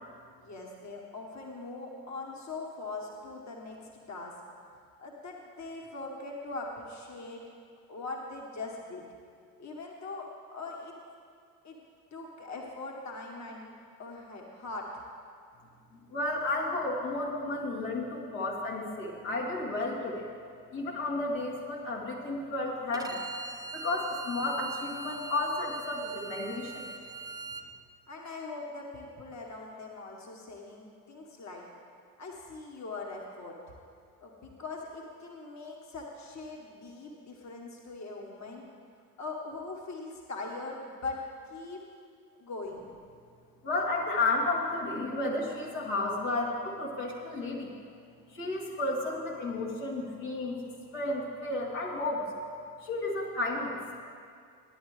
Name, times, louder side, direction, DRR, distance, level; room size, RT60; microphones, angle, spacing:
voice 1, 0.4-4.4 5.0-7.4 7.9-9.1 9.6-10.9 11.6-11.8 12.1-13.7 14.0-15.0 28.1-31.7 32.2-33.6 34.2-38.6 39.2-41.8 42.4-42.9, left 3 dB, 35° left, -1 dB, 1.5 m, -41 dB
voice 2, 15.9-20.3 20.7-23.3 23.7-26.9 43.6-47.7 48.3-50.5 50.9-52.3 52.8-53.8, left 2 dB, 70° left, -4 dB, 2.2 m, -32 dB
Bowed string instrument, 22.9-27.6, right 3 dB, 10° right, 0.7 m, -41 dB
15.0 x 10.5 x 3.3 m, 2.2 s
figure-of-eight pair, 50°, 48 cm